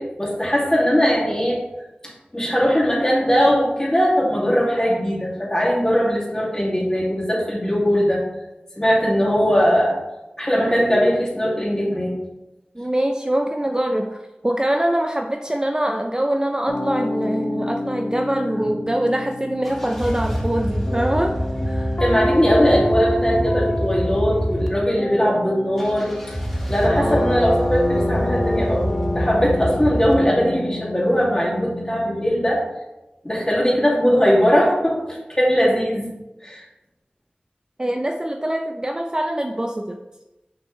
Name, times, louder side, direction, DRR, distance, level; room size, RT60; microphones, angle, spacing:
voice 1, 0.0-1.6 2.3-8.2 8.8-10.0 10.4-12.1 22.0-26.3 26.7-32.6 33.2-35.0 35.3-36.1 36.4-36.6, equal, 20° left, -5 dB, 2.5 m, -20 dB
voice 2, 12.7-21.3 21.7-22.0 26.9-27.3 37.8-40.0, right 1 dB, 25° right, 3 dB, 0.5 m, -24 dB
sound 1, 16.7-32.5, left 1 dB, 60° left, 0.8 m, -28 dB
sound 2, 19.6-24.7 25.8-30.1, equal, 5° left, 1.2 m, -26 dB
6.3 x 6.0 x 3.3 m, 0.98 s
wide cardioid pair, 50°, 3 cm